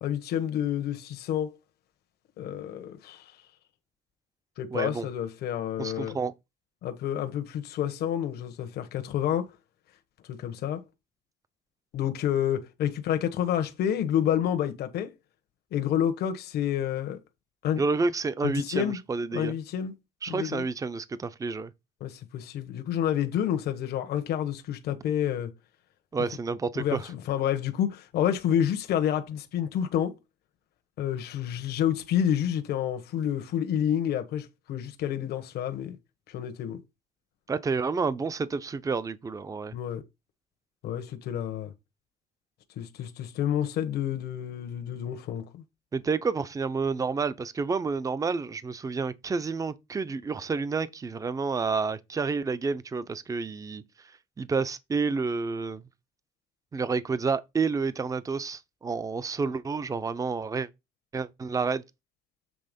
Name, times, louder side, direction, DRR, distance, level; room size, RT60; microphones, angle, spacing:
voice 1, 0.0-1.6 2.4-3.3 4.6-6.2 6.8-9.5 10.3-10.8 11.9-15.1 15.7-17.2 17.6-17.8 18.4-19.0 19.3-19.9 20.3-20.6 22.0-25.5 26.7-30.1 31.0-36.0 36.3-36.8 39.7-40.0 40.8-41.7 42.8-45.6, left 10 dB, 70° left, 1.2 m, -29 dB
voice 2, 4.7-5.1 5.8-6.3 17.8-19.5 20.2-21.7 26.1-27.0 37.5-39.7 45.9-53.8 54.4-55.8 56.7-60.7 61.1-61.8, right 4 dB, 20° right, 0.6 m, -29 dB
7.8 x 3.5 x 5.2 m
cardioid pair, 110°, 17 cm